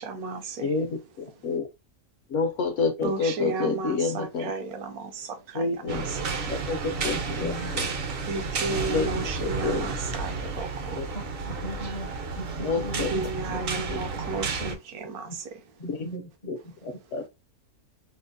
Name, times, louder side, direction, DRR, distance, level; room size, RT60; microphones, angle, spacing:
voice 1, 0.0-0.7 3.0-6.2 8.3-11.0 13.1-15.3, right 3 dB, 80° right, 1.2 m, -34 dB
voice 2, 0.6-1.7 2.3-4.5 5.5-6.1 6.5-7.9 8.9-9.9 10.9-11.1 12.6-13.1 13.9-14.0 15.9-16.1 16.5-16.6 16.8-17.3, left 4 dB, 65° left, 0.8 m, -29 dB
sound 1, 5.9-14.8, right 4 dB, 60° right, 0.6 m, -31 dB
voice 3, 7.1-7.9 11.1-13.9 14.1-14.3 14.6-14.7 15.2-15.4 15.8-17.0, equal, 45° left, 0.6 m, -39 dB
5.2 x 2.0 x 2.5 m
omnidirectional pair, 1.6 m